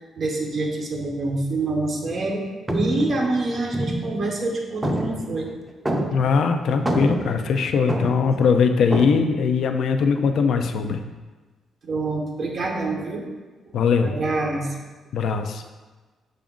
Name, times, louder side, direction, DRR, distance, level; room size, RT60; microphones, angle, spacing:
voice 1, 0.2-2.4 2.7-5.5 11.8-13.2 14.0-14.7, right 2 dB, 55° right, -1 dB, 0.8 m, -26 dB
Vent Crawling, 2.0-2.3 2.7-4.5 4.8-6.4 6.7-8.4 8.9-9.2, right 1 dB, 15° right, 0.5 m, -27 dB
voice 2, 6.1-11.0 13.7-14.1 15.1-15.6, left 5 dB, 70° left, 7 dB, 0.3 m, -20 dB
5.9 x 2.5 x 3.6 m, 1.3 s
cardioid pair, 70°, 0 cm